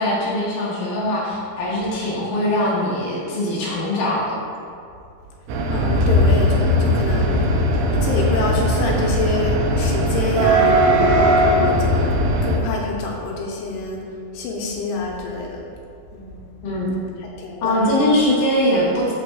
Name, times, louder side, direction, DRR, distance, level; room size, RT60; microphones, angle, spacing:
voice 1, 0.0-4.3 16.6-17.0 17.6-19.1, left 1 dB, 70° left, -6 dB, 2.9 m, -21 dB
sound 1, 5.5-12.6, equal, 90° right, 2.8 m, -18 dB
voice 2, 5.7-12.1 12.4-14.0 14.3-15.6 16.1-16.5 17.2-17.9, left 2 dB, 90° left, -2 dB, 3.0 m, -27 dB
12.5 x 4.2 x 2.4 m, 2.4 s
omnidirectional pair, 4.6 m